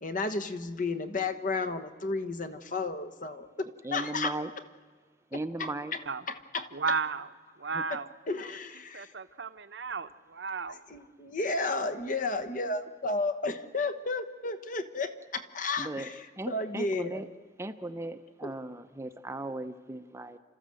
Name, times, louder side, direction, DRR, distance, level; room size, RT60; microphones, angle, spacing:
voice 1, 0.0-4.3 5.3-6.0 6.3-6.7 7.9-8.0 8.3-9.1 10.9-17.2 18.4-18.5, left 3 dB, 45° left, 11 dB, 1.2 m, -33 dB
voice 2, 3.8-4.5 5.3-5.9 7.6-7.8 15.8-16.1 16.4-17.3 17.6-20.4, right 2 dB, 15° right, 9 dB, 0.6 m, -37 dB
voice 3, 6.7-7.3 7.6-8.1 8.9-10.8, right 5 dB, 70° right, 12 dB, 0.8 m, -33 dB
30.0 x 13.5 x 7.7 m, 1.5 s
head